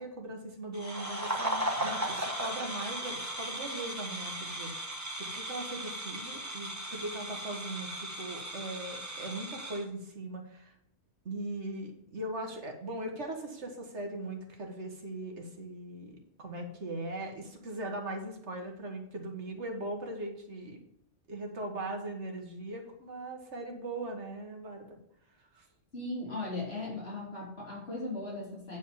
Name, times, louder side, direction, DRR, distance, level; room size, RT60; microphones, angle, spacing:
voice 1, 0.0-4.7 5.2-10.7 11.3-20.8 21.3-25.0 25.4-25.7, right 1 dB, 75° right, 3 dB, 1.9 m, -39 dB
sound 1, 0.7-9.8, right 1 dB, 15° right, 1.4 m, -37 dB
voice 2, 25.9-28.8, left 2 dB, 60° left, -5 dB, 3.1 m, -37 dB
9.5 x 4.2 x 7.1 m, 0.75 s
omnidirectional pair, 1.2 m